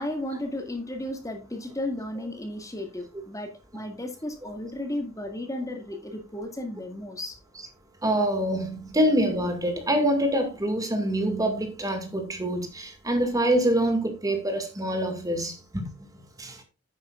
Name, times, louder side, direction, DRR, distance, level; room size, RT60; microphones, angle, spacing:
voice 1, 0.0-7.4, left 1 dB, 15° left, 2.0 m, -34 dB
voice 2, 8.0-15.9 16.4-16.6, right 1 dB, 15° right, 2.0 m, -25 dB
10.5 x 9.5 x 2.4 m
head